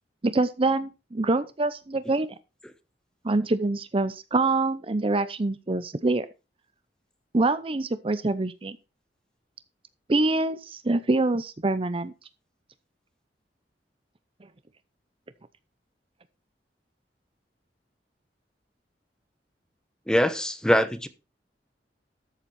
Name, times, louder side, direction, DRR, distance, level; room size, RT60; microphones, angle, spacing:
voice 1, 0.2-2.3 3.2-6.3 7.3-8.8 10.1-12.1, right 2 dB, 30° right, 0.6 m, -25 dB
voice 2, 20.1-21.1, equal, 5° left, 0.9 m, -23 dB
13.0 x 7.4 x 4.2 m
head